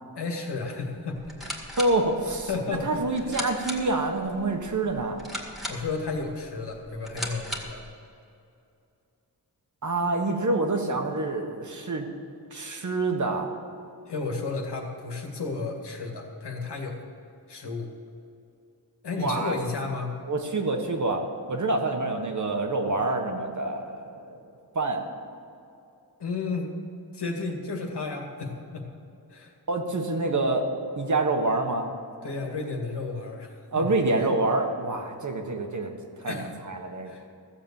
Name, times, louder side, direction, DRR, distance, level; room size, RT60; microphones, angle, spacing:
voice 1, 0.2-1.7 2.5-3.3 5.7-7.8 14.1-17.0 17.5-17.9 19.0-20.2 26.2-26.7 27.1-28.9 29.3-29.5 32.2-33.9 36.2-36.5 37.0-37.2, left 3 dB, 80° left, 1 dB, 2.1 m, -33 dB
sound 1, 1.2-7.9, equal, ahead, 1.9 m, -38 dB
voice 2, 1.8-2.5 2.8-5.2 9.8-12.1 12.5-13.5 19.2-19.6 20.3-24.4 24.7-25.0 29.7-31.9 33.7-37.1, right 2 dB, 45° right, 3 dB, 1.4 m, -27 dB
15.0 x 7.3 x 7.2 m, 2.6 s
wide cardioid pair, 120°, 40 cm